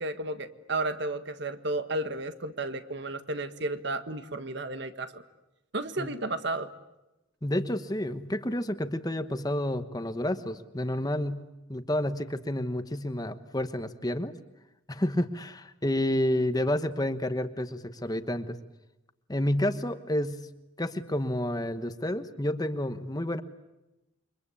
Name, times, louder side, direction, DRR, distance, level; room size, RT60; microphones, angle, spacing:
voice 1, 0.0-5.2 5.7-6.7, right 2 dB, 60° right, 10 dB, 1.6 m, -33 dB
voice 2, 7.4-11.4 11.7-14.3 14.9-18.6 19.3-20.5 20.8-23.4, left 1 dB, 20° left, 10 dB, 1.2 m, -30 dB
29.0 x 24.5 x 8.5 m, 0.96 s
head